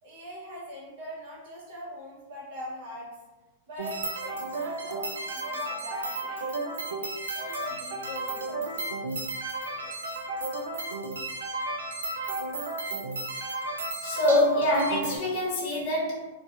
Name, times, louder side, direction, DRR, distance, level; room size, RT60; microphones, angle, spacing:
voice 1, 0.0-3.1 3.7-6.6 6.8-9.0 9.7-9.9, equal, 55° right, -6 dB, 0.9 m, -42 dB
sound 1, 3.8-15.2, right 2 dB, 80° right, 0.3 m, -33 dB
voice 2, 14.0-16.3, left 1 dB, 45° left, -5 dB, 0.8 m, -25 dB
2.4 x 2.2 x 2.4 m, 1.1 s
hypercardioid pair, 110°, 0 cm